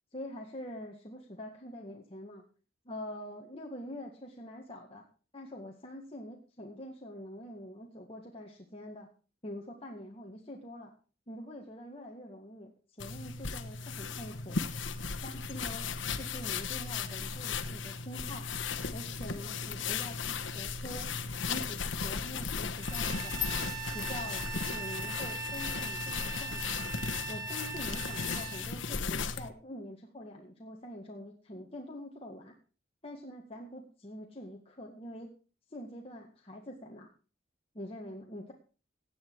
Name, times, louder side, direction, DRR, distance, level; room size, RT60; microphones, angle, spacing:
voice 1, 0.1-2.4 2.9-5.0 5.3-9.1 9.4-10.9 11.3-12.7 13.0-14.6 15.2-18.5 18.9-21.1 21.5-23.6 23.9-26.8 27.3-32.5 33.0-35.3 35.7-37.1 37.7-38.5, left 1 dB, 30° left, 0 dB, 1.8 m, -45 dB
sound 1, 13.0-29.5, left 5 dB, 85° left, 1.1 m, -36 dB
Bowed string instrument, 22.7-28.7, right 5 dB, 20° right, 4.5 m, -40 dB
17.0 x 9.4 x 4.7 m, 0.36 s
head